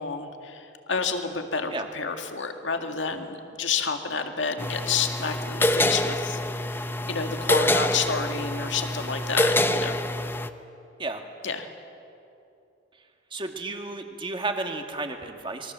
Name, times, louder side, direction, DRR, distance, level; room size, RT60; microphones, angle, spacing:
voice 1, 0.0-6.4 7.1-10.0 11.4-11.7, left 5 dB, 75° left, 5 dB, 2.0 m, -29 dB
sound 1, 4.6-10.5, left 1 dB, 10° left, 0.8 m, -26 dB
voice 2, 13.3-15.7, right 3 dB, 25° right, 4 dB, 2.0 m, -32 dB
28.0 x 23.0 x 7.5 m, 2.7 s
head